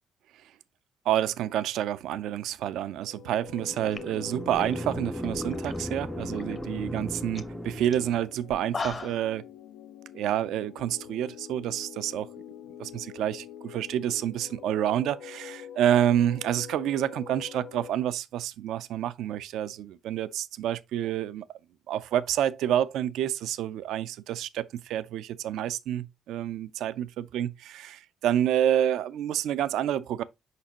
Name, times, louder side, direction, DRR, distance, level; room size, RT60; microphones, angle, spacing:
voice 1, 1.1-9.4 10.1-12.3 12.8-21.5 21.9-30.2, right 11 dB, 85° right, 0.4 m, -28 dB
sound 1, 3.0-17.9, left 9 dB, 85° left, 0.3 m, -45 dB
sound 2, 3.5-8.4, equal, 5° right, 0.3 m, -36 dB
sound 3, 3.6-3.7 3.9-5.9 6.2-6.7 7.0-7.1 7.3-7.5 7.9-8.0 8.5-9.3, left 4 dB, 35° left, 0.7 m, -39 dB
6.6 x 5.0 x 2.8 m
cardioid pair, 90°, 0 cm